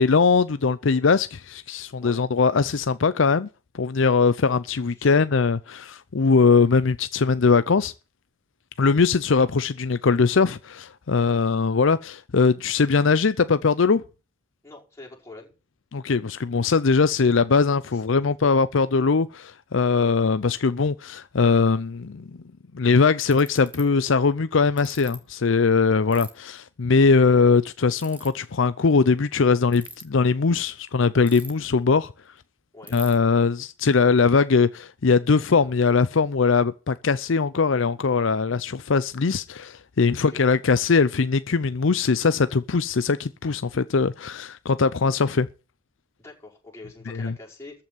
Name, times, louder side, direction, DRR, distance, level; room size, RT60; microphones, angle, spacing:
voice 1, 0.0-3.5 3.7-7.9 8.8-14.0 15.9-22.3 22.7-32.1 32.9-45.5 47.1-47.3, left 4 dB, 70° left, 0.6 m, -21 dB
voice 2, 14.6-15.5 17.9-18.2 32.7-33.0 40.3-40.4 46.2-47.8, left 2 dB, 15° left, 5.5 m, -45 dB
Ratchet pawl, 22.5-22.6 23.2-23.8 24.8-25.2 26.1-26.3 28.0-28.3 29.6-30.0 31.3-31.7 32.1-32.2 32.4-32.5 32.9-33.1, right 2 dB, 5° right, 2.1 m, -41 dB
14.0 x 5.7 x 9.3 m
head